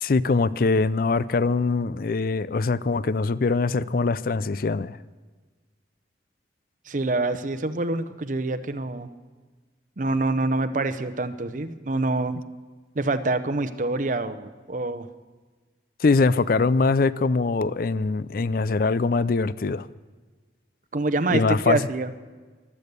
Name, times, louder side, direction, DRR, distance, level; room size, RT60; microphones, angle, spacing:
voice 1, 0.0-5.0 16.0-19.9 21.3-21.8, left 3 dB, 55° left, 17 dB, 0.4 m, -23 dB
voice 2, 6.9-9.1 10.0-12.4 13.0-15.1 20.9-22.1, right 2 dB, 45° right, 12 dB, 0.7 m, -26 dB
14.5 x 12.0 x 6.8 m, 1.4 s
head